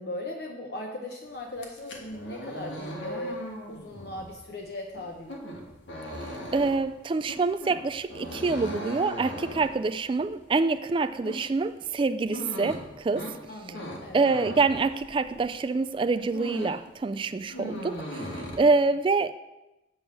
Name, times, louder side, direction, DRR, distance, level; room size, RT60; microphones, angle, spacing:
voice 1, 0.0-3.4 3.7-5.3 13.5-14.4, left 1 dB, 60° left, 1 dB, 0.8 m, -38 dB
sound 1, 1.5-15.6 15.9-16.9 17.2-18.6, equal, 85° left, 1.6 m, -39 dB
voice 2, 6.5-13.3 14.1-19.3, right 3 dB, 30° right, 10 dB, 0.3 m, -26 dB
7.5 x 6.3 x 6.0 m, 0.99 s
head